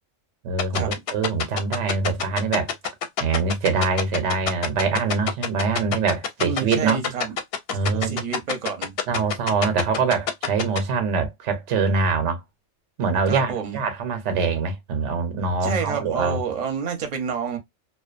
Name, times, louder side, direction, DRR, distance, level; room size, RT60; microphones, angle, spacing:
voice 1, 0.4-2.7 3.2-7.0 7.7-8.3 9.1-12.4 13.0-16.4, right 4 dB, 90° right, 1.0 m, -24 dB
sound 1, 0.6-10.8, left 7 dB, 65° left, 0.7 m, -25 dB
voice 2, 6.4-7.3 7.9-8.9 13.3-13.8 15.6-17.6, right 6 dB, 45° right, 0.6 m, -29 dB
2.3 x 2.2 x 2.4 m
omnidirectional pair, 1.2 m